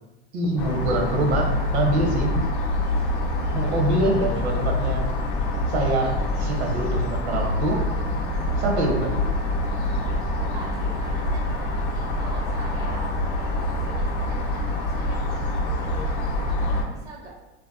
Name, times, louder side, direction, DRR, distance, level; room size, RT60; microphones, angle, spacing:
voice 1, 0.3-2.5 3.5-5.0 5.7-7.9 8.6-9.2, right 1 dB, 75° right, 1 dB, 0.7 m, -25 dB
sound 1, 0.6-16.8, left 1 dB, 50° left, 0.6 m, -25 dB
voice 2, 10.3-17.3, right 3 dB, 10° right, -2 dB, 0.4 m, -44 dB
2.7 x 2.1 x 2.3 m, 1.0 s
hypercardioid pair, 110°, 34 cm